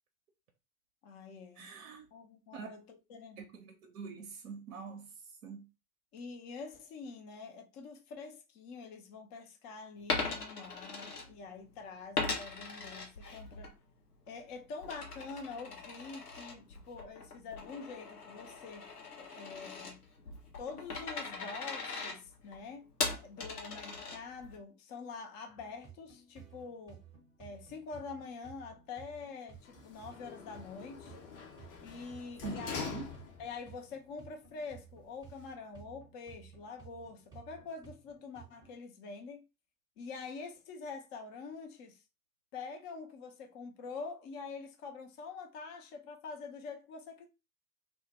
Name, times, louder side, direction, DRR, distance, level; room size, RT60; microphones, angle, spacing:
voice 1, 1.0-1.7 2.1-3.4 6.1-13.7 14.3-18.9 19.2-20.1 20.6-22.9 23.2-27.0 27.4-31.1 31.8-32.9 33.4-39.4 40.0-42.0 42.5-47.3, left 4 dB, 25° left, 0.4 m, -46 dB
voice 2, 1.6-2.1 2.5-2.7 3.4-5.1 5.4-5.6 32.4-33.1, right 5 dB, 70° right, 0.6 m, -45 dB
Coin (dropping), 10.0-11.7 12.1-13.7 14.1-24.6, left 3 dB, 90° left, 0.7 m, -40 dB
sound 1, 25.5-38.8, right 7 dB, 10° right, 0.6 m, -56 dB
Sliding door, 29.5-33.7 34.1-34.2, left 5 dB, 60° left, 0.8 m, -44 dB
2.1 x 2.0 x 2.8 m
figure-of-eight pair, 85°, 45 cm